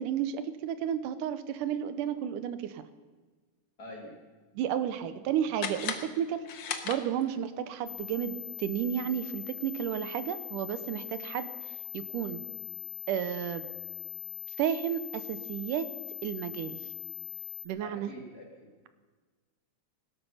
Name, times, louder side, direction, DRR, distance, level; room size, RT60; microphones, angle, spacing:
voice 1, 0.0-2.8 4.6-6.4 6.8-12.4 13.1-13.6 14.6-15.9 16.2-16.8 17.7-18.1, right 9 dB, 85° right, 12 dB, 2.3 m, -32 dB
voice 2, 3.8-4.2 17.8-18.7, left 1 dB, 30° left, 1 dB, 2.5 m, -45 dB
sound 1, 5.6-7.5, left 7 dB, 70° left, 1.1 m, -37 dB
sound 2, 7.9-17.7, left 8 dB, 90° left, 2.7 m, -41 dB
19.5 x 12.5 x 5.6 m, 1.4 s
omnidirectional pair, 3.7 m